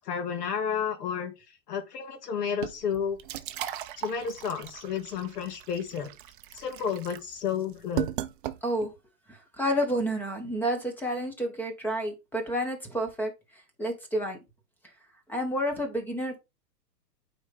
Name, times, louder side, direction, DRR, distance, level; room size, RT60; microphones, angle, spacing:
voice 1, 0.1-1.3 1.7-3.2 4.0-6.1 6.5-8.1, left 7 dB, 70° left, 2.1 m, -31 dB
sound 1, 2.6-9.0, right 13 dB, 35° right, 0.5 m, -37 dB
voice 2, 9.3-13.3 13.8-14.4 15.3-16.4, equal, 5° left, 1.2 m, -30 dB
8.8 x 4.1 x 3.5 m
hypercardioid pair, 145°, 49 cm